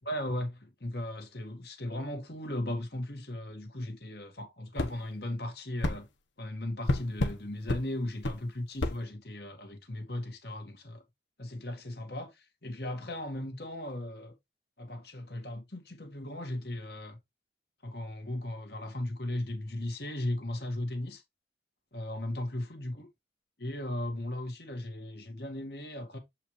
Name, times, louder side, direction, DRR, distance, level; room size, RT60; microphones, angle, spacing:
voice 1, 0.1-6.1 6.4-11.0 11.4-14.3 14.8-17.2 17.8-21.2 21.9-23.1 23.6-26.2, left 1 dB, 60° left, 1.9 m, -37 dB
sound 1, 4.8-4.9 5.8-6.0 6.9-7.4 7.7-7.8 8.2-8.4 8.8-9.0, left 1 dB, 85° left, 1.1 m, -29 dB
7.7 x 4.9 x 3.2 m
head